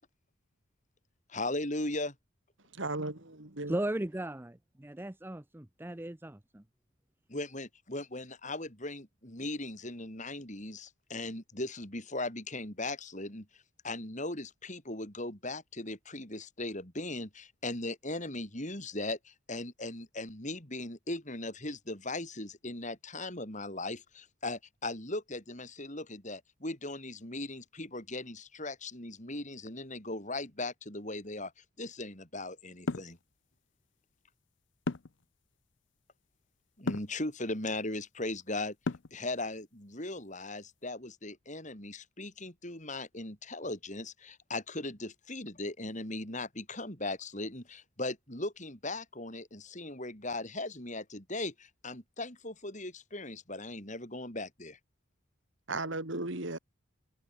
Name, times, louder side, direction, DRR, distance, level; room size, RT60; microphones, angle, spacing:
voice 1, 1.3-2.1 7.3-13.5 13.8-31.5 31.8-33.2 36.8-38.8 39.1-54.8, left 2 dB, 35° left, 5.6 m, -38 dB
voice 2, 2.7-3.8 55.7-56.6, right 2 dB, 65° right, 3.1 m, -36 dB
voice 3, 3.7-6.6, right 1 dB, 10° right, 0.6 m, -37 dB
sound 1, 32.9-33.2 34.9-35.2 36.9-37.2 38.8-39.2, left 3 dB, 60° left, 0.7 m, -33 dB
head